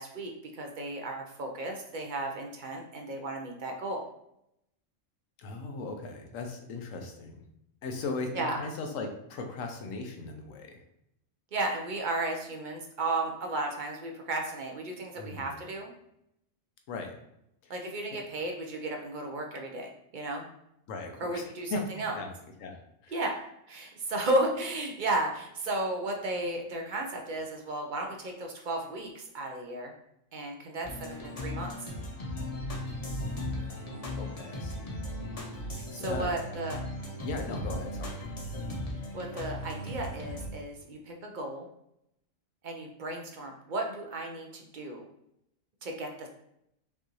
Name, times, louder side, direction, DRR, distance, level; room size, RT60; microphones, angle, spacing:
voice 1, 0.0-4.0 8.3-8.6 11.5-15.9 17.7-20.4 21.2-22.2 23.1-23.3 23.7-29.9 30.3-31.9 35.7-36.8 39.1-41.7 42.6-45.1 45.8-46.3, right 2 dB, 50° right, 2 dB, 0.6 m, -34 dB
voice 2, 5.4-7.4 7.8-10.8 15.2-15.5 16.9-17.2 17.6-17.7 18.1-18.2 20.9-21.8 22.1-22.3 22.6-22.8 23.0-23.1 33.7-35.0 35.9-36.3 37.2-38.2, left 3 dB, 80° left, 4 dB, 1.1 m, -38 dB
sound 1, 30.8-40.5, left 1 dB, 35° left, 0.7 m, -37 dB
5.4 x 2.5 x 3.0 m, 0.79 s
omnidirectional pair, 1.4 m